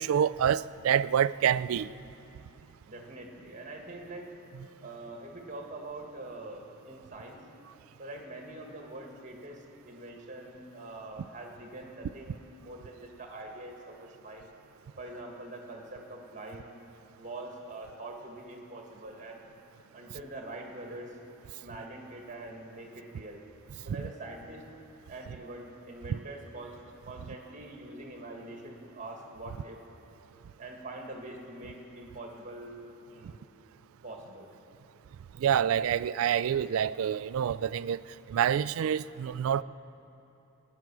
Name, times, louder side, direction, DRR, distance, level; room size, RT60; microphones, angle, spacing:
voice 1, 0.0-1.9 35.4-38.0 38.3-39.6, right 9 dB, 85° right, 18 dB, 0.3 m, -27 dB
voice 2, 2.9-4.3 4.8-7.4 8.0-14.5 15.0-16.7 17.2-19.4 19.9-21.1 21.6-23.4 23.8-24.6 25.1-26.8 27.0-29.8 30.6-32.8 33.1-33.5 34.0-34.5, right 2 dB, 35° right, 1 dB, 1.8 m, -44 dB
18.5 x 9.4 x 6.1 m, 2.8 s
head